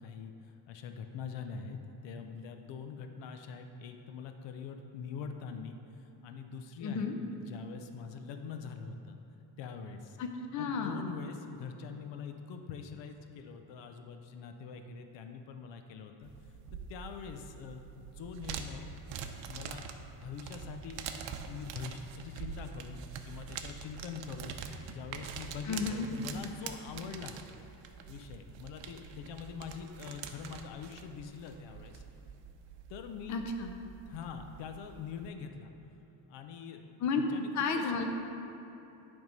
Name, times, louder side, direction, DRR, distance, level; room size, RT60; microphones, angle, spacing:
voice 1, 0.0-9.2 9.6-10.2 10.6-16.3 16.9-18.9 19.5-21.0 21.5-24.6 24.9-27.4 28.1-32.0 32.9-33.4 34.1-35.7 36.3-38.0, left 6 dB, 75° left, 6 dB, 0.6 m, -44 dB
voice 2, 6.8-7.2 10.2-11.0 25.7-26.1 33.3-33.7 37.0-37.2 37.5-38.0, left 5 dB, 40° left, 4 dB, 0.6 m, -32 dB
sound 1, 16.2-35.3, right 7 dB, 85° right, 0.7 m, -45 dB
11.0 x 3.6 x 5.2 m, 3.0 s
cardioid pair, 155°, 43 cm